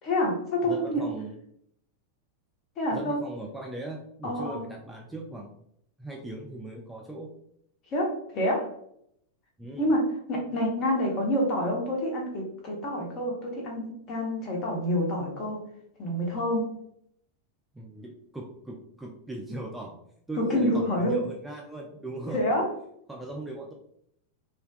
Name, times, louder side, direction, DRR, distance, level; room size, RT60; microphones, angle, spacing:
voice 1, 0.0-1.0 2.8-3.2 4.2-4.6 7.9-8.7 9.8-10.0 10.3-15.6 16.0-16.7 20.4-21.2 22.3-22.7, equal, 35° left, -1 dB, 0.8 m, -27 dB
voice 2, 0.6-1.3 2.9-5.5 6.0-7.3 9.6-9.8 17.7-20.0 20.3-22.4 23.1-23.7, right 2 dB, 5° right, -1 dB, 0.3 m, -39 dB
2.5 x 2.2 x 2.3 m, 0.72 s
figure-of-eight pair, 90°, 0 cm